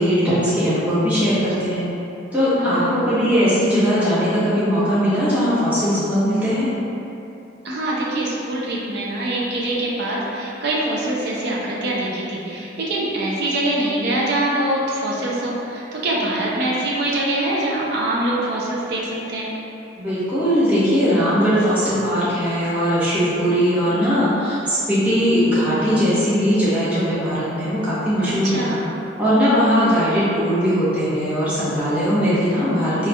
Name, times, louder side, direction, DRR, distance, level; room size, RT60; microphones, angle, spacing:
voice 1, 0.0-1.8 2.3-6.7 20.0-28.6 29.2-33.1, equal, 10° right, -13 dB, 0.8 m, -19 dB
voice 2, 2.6-3.1 7.6-19.5 28.2-28.9, right 1 dB, 60° right, -5 dB, 0.5 m, -24 dB
4.2 x 2.3 x 2.2 m, 2.8 s
head